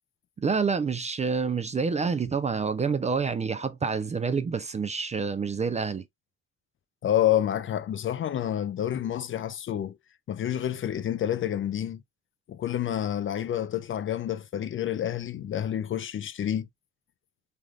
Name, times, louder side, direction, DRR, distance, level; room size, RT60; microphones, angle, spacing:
voice 1, 0.4-6.0, right 5 dB, 25° right, 0.3 m, -28 dB
voice 2, 7.0-10.0 10.3-12.0 12.5-16.7, left 11 dB, 45° left, 0.4 m, -28 dB
3.4 x 2.4 x 2.3 m
cardioid pair, 90°, 30 cm